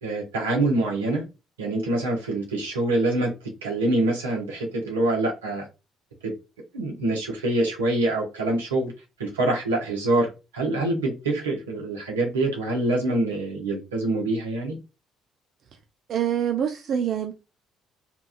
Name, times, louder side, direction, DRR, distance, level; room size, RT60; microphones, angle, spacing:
voice 1, 0.0-1.3 1.6-3.3 3.6-5.7 6.2-6.3 6.7-8.9 9.2-14.8, right 2 dB, 90° right, 0.8 m, -25 dB
voice 2, 16.1-17.3, right 9 dB, 60° right, 0.3 m, -25 dB
2.9 x 2.3 x 2.4 m
hypercardioid pair, 50°, 0 cm